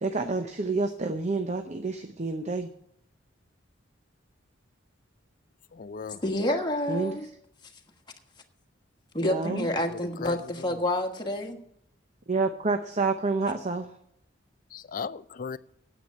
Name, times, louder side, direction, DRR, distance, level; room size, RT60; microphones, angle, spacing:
voice 1, 0.0-2.7 6.9-7.2 9.2-9.7 12.3-13.9, right 3 dB, 35° right, 0.7 m, -28 dB
voice 2, 5.7-6.2 9.9-10.8 14.7-15.6, left 5 dB, 45° left, 0.4 m, -37 dB
voice 3, 6.2-7.3 9.1-11.6, left 1 dB, 20° left, 1.4 m, -28 dB
9.2 x 8.1 x 8.4 m
head